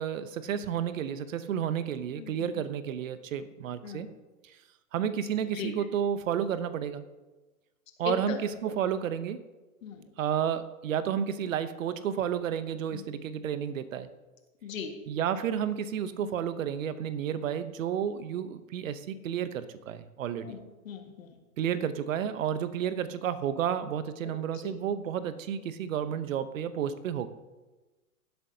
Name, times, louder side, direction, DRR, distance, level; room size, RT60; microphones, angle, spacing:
voice 1, 0.0-4.1 4.4-4.6 4.9-7.0 8.0-9.4 10.2-14.1 15.1-20.6 21.6-27.3, right 9 dB, 65° right, 13 dB, 0.9 m, -31 dB
voice 2, 2.1-2.5 3.8-4.1 5.5-5.7 8.1-8.4 9.8-10.1 12.9-13.0 14.6-14.9 16.2-16.3 20.4-20.6 20.9-21.3 24.2-24.3 24.6-24.8, left 7 dB, 65° left, 4 dB, 1.8 m, -38 dB
16.5 x 7.9 x 2.8 m, 1.2 s
hypercardioid pair, 125°, 42 cm